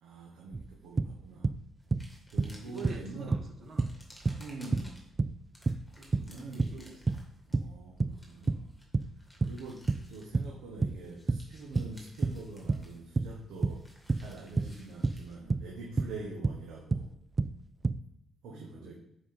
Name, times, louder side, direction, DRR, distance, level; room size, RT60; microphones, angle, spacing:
voice 1, 0.0-1.4 2.3-3.4 4.4-4.9 6.3-6.7 7.5-8.6 9.5-9.8 10.1-13.8 14.1-17.1 18.4-18.9, right 3 dB, 90° right, -2 dB, 1.3 m, -44 dB
sound 1, 0.5-1.6 1.9-3.1 3.3-9.1 9.4-16.6 16.9-18.0, right 3 dB, 25° right, 0.3 m, -30 dB
sound 2, 1.8-3.1 3.6-5.1 5.5-10.6 10.9-15.3, equal, 5° left, 2.5 m, -58 dB
voice 2, 2.6-3.9 6.0-7.0 18.4-18.9, right 4 dB, 45° right, 1 dB, 2.0 m, -47 dB
7.3 x 5.0 x 4.4 m, 0.82 s
cardioid pair, 90°, 0 cm